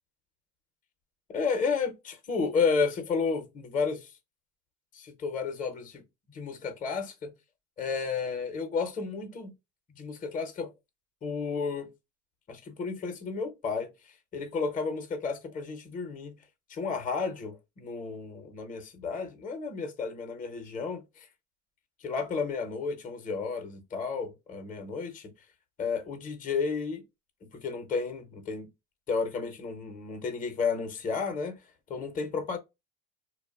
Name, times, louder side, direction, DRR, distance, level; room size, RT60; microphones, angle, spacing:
voice 1, 1.3-4.2 4.9-5.8 6.3-7.3 7.8-9.5 9.9-10.7 11.2-11.9 12.5-16.3 16.7-21.3 22.0-25.3 25.8-27.0 27.5-28.7 29.1-31.6 31.9-32.6, left 5 dB, 25° left, 0.7 m, -32 dB
2.7 x 2.1 x 2.3 m
supercardioid pair, 105°, 34 cm